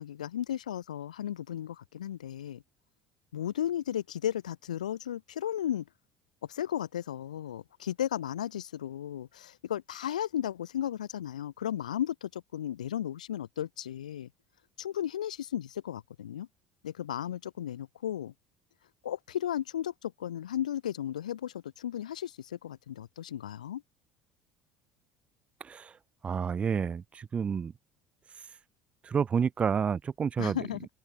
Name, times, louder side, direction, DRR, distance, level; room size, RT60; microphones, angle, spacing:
voice 1, 0.0-2.6 3.3-5.8 6.4-14.3 14.8-16.5 16.8-18.3 19.0-23.8 30.4-30.9, left 11 dB, 75° left, 0.6 m, -35 dB
voice 2, 25.6-25.9 26.2-27.7 29.0-30.6, right 6 dB, 30° right, 1.0 m, -29 dB
figure-of-eight pair, 60°, 4 cm